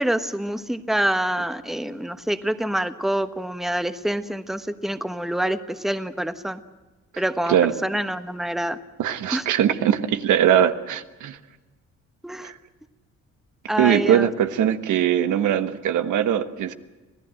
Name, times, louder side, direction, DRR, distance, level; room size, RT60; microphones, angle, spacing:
voice 1, 0.0-6.6 7.2-8.8 9.3-9.4 12.2-12.5 13.7-14.3, right 1 dB, ahead, 10 dB, 1.2 m, -26 dB
voice 2, 9.0-11.4 12.4-12.6 13.8-16.7, right 10 dB, 80° right, 9 dB, 1.3 m, -21 dB
26.5 x 16.5 x 7.7 m, 1.2 s
cardioid pair, 90°, 30 cm